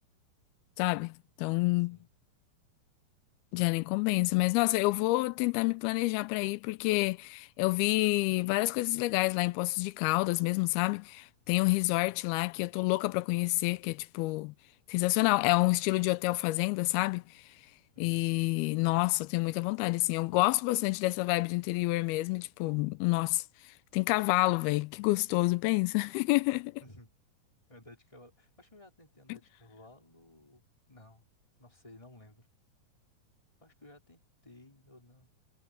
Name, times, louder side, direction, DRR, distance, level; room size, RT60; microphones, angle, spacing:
voice 1, 0.8-2.0 3.5-14.5 14.9-17.2 18.0-23.4 23.9-26.7, left 21 dB, 90° left, 2.6 m, -28 dB
voice 2, 17.9-18.3 26.8-27.1 27.7-31.3 31.6-32.5 33.6-35.3, left 1 dB, 10° left, 4.2 m, -56 dB
omnidirectional pair, 4.3 m